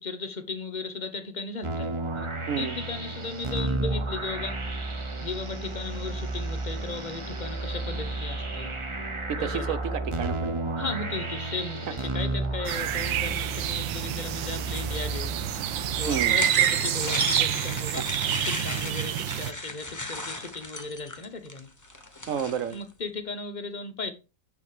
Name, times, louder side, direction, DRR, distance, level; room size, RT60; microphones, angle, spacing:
voice 1, 0.0-2.3 2.6-4.6 5.2-8.7 9.4-9.7 10.8-15.3 16.0-21.7 22.7-24.1, left 3 dB, 40° left, 0.6 m, -36 dB
sound 1, 1.6-16.2, right 2 dB, 35° right, 0.4 m, -32 dB
voice 2, 9.3-10.5 16.1-16.4 22.3-22.8, right 8 dB, 60° right, 0.9 m, -30 dB
sound 2, 12.7-19.5, right 13 dB, 80° right, 1.3 m, -28 dB
sound 3, 15.9-22.8, left 1 dB, 15° left, 0.9 m, -35 dB
7.2 x 6.6 x 4.8 m
omnidirectional pair, 2.1 m